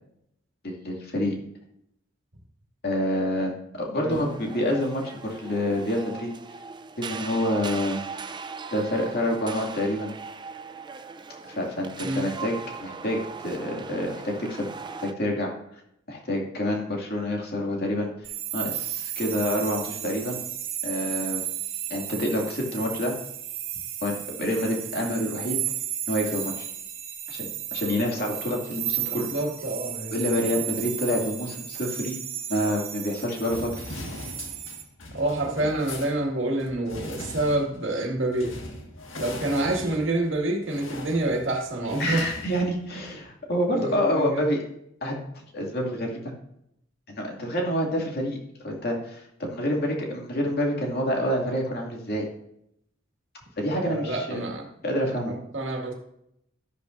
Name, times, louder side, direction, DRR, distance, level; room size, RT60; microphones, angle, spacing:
voice 1, 0.6-1.3 2.8-6.3 7.0-8.0 8.7-10.1 11.6-14.7 15.0-15.5 16.1-18.1 18.5-20.4 20.8-21.4 21.9-23.1 24.0-25.6 26.1-26.7 27.3-29.3 30.1-32.2 32.5-33.8 42.0-44.6 45.0-45.2 45.5-46.2 47.1-48.4 48.6-52.3 53.6-54.4 54.8-55.3, equal, 50° left, -1 dB, 2.4 m, -27 dB
voice 2, 3.9-4.4 12.0-12.2 29.1-30.4 35.1-38.6 39.2-42.2 43.8-44.4 53.7-54.6 55.2-55.9, right 2 dB, 65° right, 1 dB, 2.0 m, -28 dB
sound 1, 4.1-15.1, right 5 dB, 25° right, 0.5 m, -39 dB
sound 2, 18.2-34.8, right 12 dB, 90° right, 1.8 m, -34 dB
sound 3, 33.5-43.3, left 2 dB, 70° left, 1.8 m, -40 dB
12.5 x 11.5 x 2.6 m, 0.77 s
head